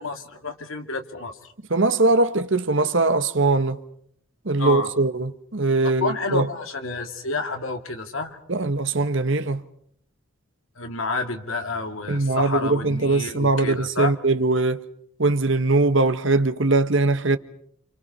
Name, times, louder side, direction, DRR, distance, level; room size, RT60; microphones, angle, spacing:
voice 1, 0.0-1.5 4.6-4.9 6.0-8.4 10.8-14.1, left 3 dB, 75° left, 2.5 m, -29 dB
voice 2, 1.7-3.8 4.4-6.5 8.5-9.6 12.1-14.8 15.2-17.4, right 3 dB, 60° right, 1.3 m, -21 dB
28.5 x 27.5 x 5.6 m
head